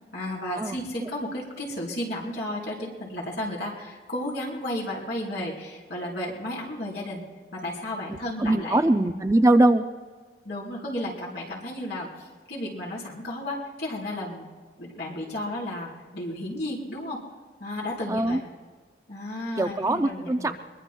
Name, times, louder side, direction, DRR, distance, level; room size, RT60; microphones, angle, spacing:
voice 1, 0.1-7.2 7.5-8.8 10.4-14.5 14.8-17.2 17.6-18.4 19.1-20.5, left 1 dB, 65° left, -4 dB, 4.1 m, -33 dB
voice 2, 8.4-9.8 18.1-18.4 19.6-20.5, right 1 dB, 15° right, 8 dB, 0.4 m, -21 dB
23.0 x 22.5 x 2.3 m, 1.5 s
head